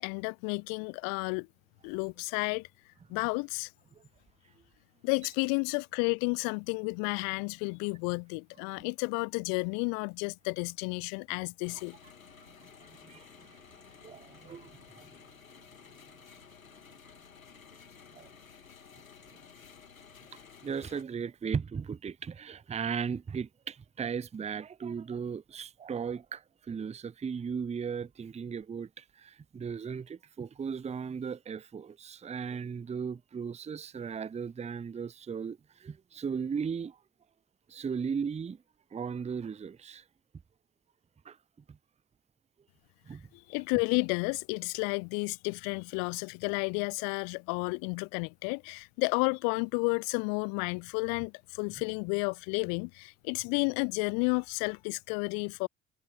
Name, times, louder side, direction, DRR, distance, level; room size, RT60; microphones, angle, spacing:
voice 1, 0.0-1.5 1.8-2.7 3.1-3.7 5.0-12.0 43.3-55.7, left 40 dB or more, 55° left, 0.6 m, -32 dB
sound 1, 11.6-21.0, left 6 dB, 85° left, 2.1 m, -54 dB
voice 2, 12.8-13.6 14.0-15.1 18.1-18.3 20.3-37.0 37.7-38.6 38.9-40.0 41.2-41.4 41.7-41.8 43.1-43.3, right 6 dB, 15° right, 0.7 m, -37 dB
figure-of-eight pair, 50°, 40 cm